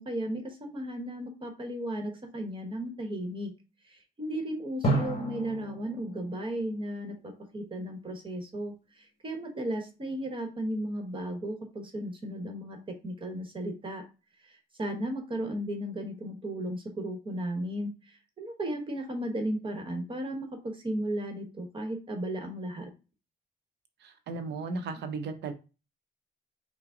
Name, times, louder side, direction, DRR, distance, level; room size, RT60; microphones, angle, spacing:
voice 1, 0.0-3.5 3.9-14.0 14.8-17.9 18.4-22.9, right 1 dB, 30° right, 4 dB, 1.1 m, -35 dB
Drum, 4.8-7.7, right 2 dB, 35° left, 1.3 m, -33 dB
voice 2, 24.0-25.5, right 4 dB, 85° right, 8 dB, 0.7 m, -35 dB
5.8 x 2.1 x 3.7 m, 0.32 s
cardioid pair, 130°, 17 cm